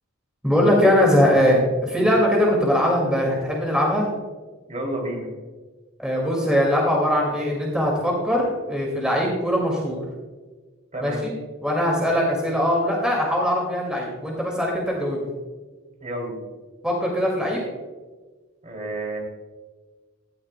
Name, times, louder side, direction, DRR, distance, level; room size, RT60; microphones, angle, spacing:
voice 1, 0.4-4.1 6.0-10.0 11.0-11.3 11.6-15.3 16.8-17.6, equal, 5° right, -2 dB, 2.1 m, -21 dB
voice 2, 4.7-5.3 10.9-11.3 16.0-16.4 18.6-19.2, right 1 dB, 35° right, 1 dB, 2.8 m, -30 dB
16.5 x 13.0 x 2.2 m, 1.3 s
head